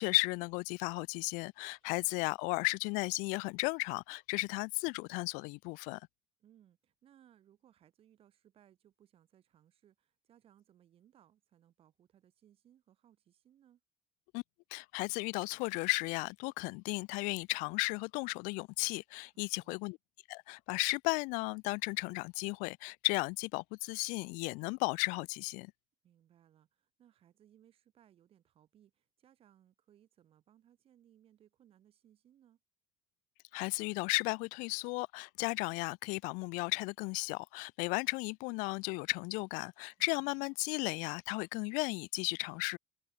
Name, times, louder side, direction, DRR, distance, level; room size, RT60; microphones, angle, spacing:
voice 1, 0.0-6.0 14.3-14.4 14.7-20.0 20.3-25.7 33.5-42.8, left 29 dB, 90° left, 0.4 m, -35 dB
voice 2, 1.8-2.2 6.4-13.8 19.3-19.8 26.0-32.6 40.0-40.5, right 10 dB, 45° right, 7.6 m, -66 dB
sound 1, 15.4-16.5 17.3-17.6 18.0-18.1 18.3-18.5 19.1-19.4, left 15 dB, 60° left, 2.4 m, -60 dB
cardioid pair, 135°, 13 cm